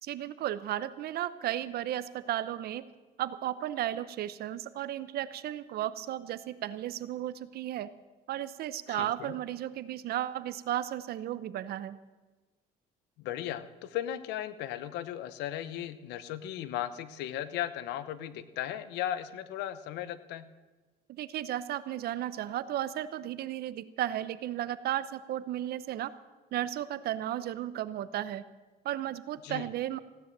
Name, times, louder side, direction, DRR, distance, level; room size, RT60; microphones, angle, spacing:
voice 1, 0.0-2.9 3.2-7.9 8.3-12.0 21.1-26.1 26.5-28.4 28.8-30.0, right 12 dB, 65° right, 15 dB, 0.8 m, -34 dB
voice 2, 8.9-9.3 13.2-20.5 29.4-29.7, left 11 dB, 90° left, 14 dB, 1.0 m, -36 dB
16.0 x 10.0 x 7.4 m, 1.3 s
cardioid pair, 110°, 17 cm